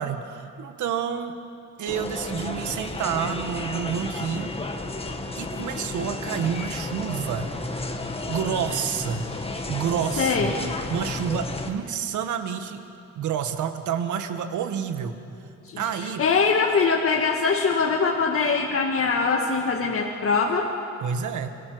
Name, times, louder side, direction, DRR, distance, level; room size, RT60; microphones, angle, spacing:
voice 1, 0.0-1.4 1.8-4.6 5.4-7.5 8.3-9.2 9.7-10.5 10.9-12.8 13.1-15.2 15.8-16.2 21.0-21.5, right 8 dB, 75° right, 8 dB, 1.7 m, -29 dB
sound 1, 1.9-11.7, left 2 dB, 20° left, 1.9 m, -32 dB
voice 2, 10.2-10.5 15.7-15.8 16.2-20.7, left 5 dB, 50° left, 1 dB, 1.8 m, -22 dB
26.5 x 18.0 x 6.3 m, 2.5 s
cardioid pair, 90°, 30 cm